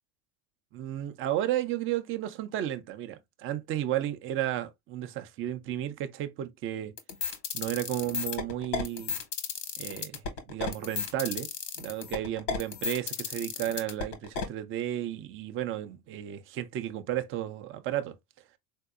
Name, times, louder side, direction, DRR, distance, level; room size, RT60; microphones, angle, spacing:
voice 1, 0.7-6.9 7.5-9.2 9.8-10.2 10.5-11.5 11.8-18.2, right 12 dB, 30° right, 0.4 m, -33 dB
sound 1, 7.0-14.5, left 6 dB, 90° left, 1.3 m, -33 dB
3.8 x 2.6 x 2.3 m
supercardioid pair, 110°, 48 cm